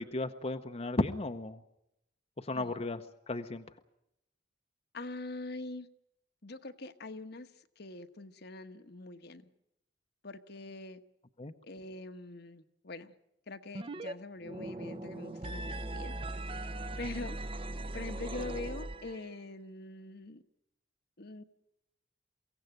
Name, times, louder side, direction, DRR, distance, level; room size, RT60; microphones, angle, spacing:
voice 1, 0.0-1.6 2.4-3.0 3.3-3.6 11.4-11.5, left 2 dB, 35° left, 6 dB, 0.8 m, -34 dB
voice 2, 2.5-2.9 4.9-5.9 6.4-7.5 7.8-9.5 10.2-11.0 11.6-13.1 13.5-16.1 16.5-17.4 17.9-20.4 21.2-21.4, left 2 dB, 60° left, 8 dB, 1.2 m, -44 dB
sound 1, 13.7-14.1 14.4-19.4, right 1 dB, 30° right, 0.8 m, -39 dB
23.5 x 16.5 x 9.3 m, 0.84 s
head